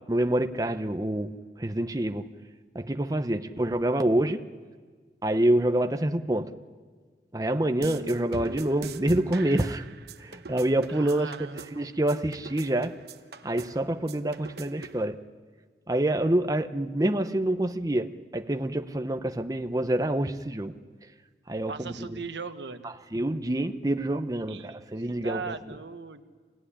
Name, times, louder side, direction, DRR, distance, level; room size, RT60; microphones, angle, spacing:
voice 1, 0.0-2.3 2.7-4.4 5.2-6.5 7.3-9.8 10.2-11.5 11.8-12.9 13.4-15.2 15.9-20.7 21.5-22.1 23.1-25.5, right 1 dB, 20° right, 6 dB, 0.7 m, -27 dB
sound 1, 7.8-15.0, right 3 dB, 65° right, 1.0 m, -41 dB
voice 2, 10.9-12.0 21.7-22.9 24.5-26.2, right 5 dB, 85° right, 9 dB, 1.2 m, -39 dB
26.0 x 17.5 x 9.9 m, 1.5 s
head